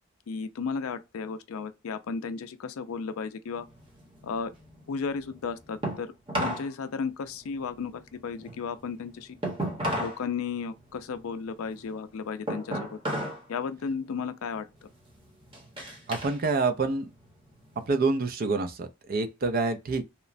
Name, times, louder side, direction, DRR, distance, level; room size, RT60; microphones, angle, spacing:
voice 1, 0.3-3.7 4.2-4.5 4.9-6.1 6.4-9.4 10.0-13.0 13.5-14.7, left 5 dB, 70° left, 0.4 m, -34 dB
sound 1, 3.6-6.7 7.0-10.2 10.6-13.5 13.8-14.2 14.7-16.4 16.8-17.9, equal, 25° right, 0.9 m, -35 dB
voice 2, 16.1-17.1 17.9-20.0, right 3 dB, 45° right, 0.4 m, -27 dB
3.0 x 2.1 x 2.5 m
head